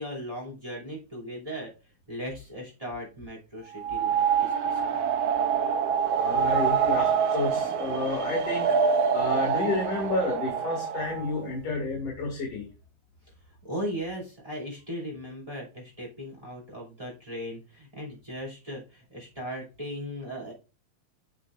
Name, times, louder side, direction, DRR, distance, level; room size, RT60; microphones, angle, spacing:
voice 1, 0.0-1.7 2.1-4.9 13.6-20.5, equal, 10° right, -2 dB, 2.2 m, -37 dB
sound 1, 3.7-11.4, right 7 dB, 90° right, 1.4 m, -26 dB
voice 2, 6.2-8.7 9.1-12.6, left 3 dB, 50° left, -3 dB, 2.9 m, -30 dB
8.3 x 6.4 x 2.5 m, 0.30 s
omnidirectional pair, 4.0 m